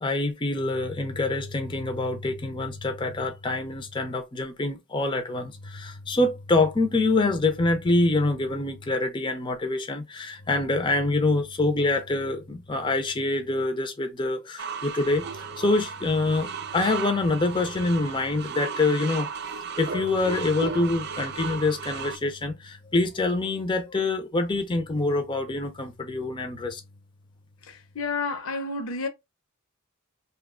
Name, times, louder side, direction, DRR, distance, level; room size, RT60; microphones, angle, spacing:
voice 1, 0.0-19.3 19.8-26.8, left 2 dB, 25° left, 0.5 m, -26 dB
sound 1, 14.6-22.2, right 6 dB, 55° right, 0.4 m, -35 dB
voice 2, 27.6-29.1, left 3 dB, 80° left, 0.7 m, -30 dB
2.8 x 2.3 x 3.6 m
head